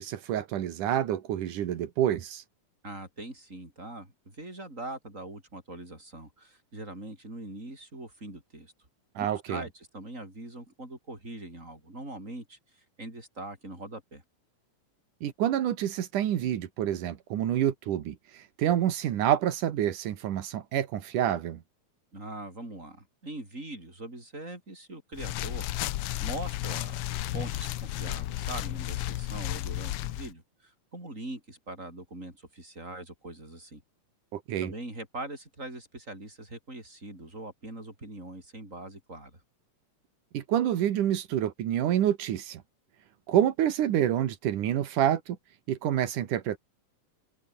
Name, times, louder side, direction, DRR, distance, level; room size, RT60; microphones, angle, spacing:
voice 1, 0.0-2.4 9.2-9.6 15.2-21.6 34.3-34.7 40.3-42.6 43.3-45.4 45.7-46.6, right 11 dB, 90° right, 3.2 m, -28 dB
voice 2, 2.8-8.7 9.2-14.2 22.1-27.1 27.3-33.8 34.6-39.4, right 2 dB, 25° right, 8.2 m, -42 dB
sound 1, 25.1-30.3, left 15 dB, 90° left, 1.2 m, -33 dB
omnidirectional pair, 3.5 m